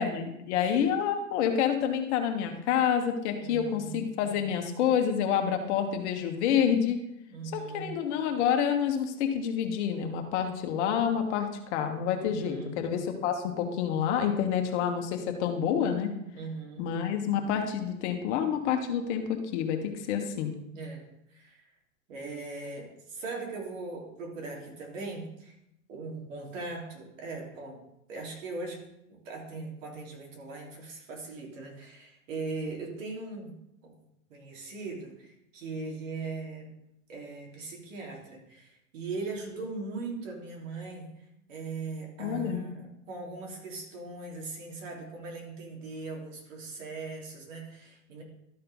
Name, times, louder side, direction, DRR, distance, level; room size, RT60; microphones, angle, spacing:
voice 1, 0.0-7.0 7.5-16.1 16.8-20.5 42.2-42.6, left 8 dB, 55° left, 4 dB, 1.5 m, -28 dB
voice 2, 3.4-4.0 7.3-8.0 12.1-12.9 16.3-16.9 20.7-21.0 21.3-21.7 22.1-25.6 25.9-27.8 28.1-28.8 29.1-33.9 34.3-36.7 37.1-41.1 41.5-48.2, right 3 dB, 65° right, 0 dB, 3.3 m, -39 dB
12.5 x 4.4 x 5.4 m, 0.82 s
supercardioid pair, 145°, 41 cm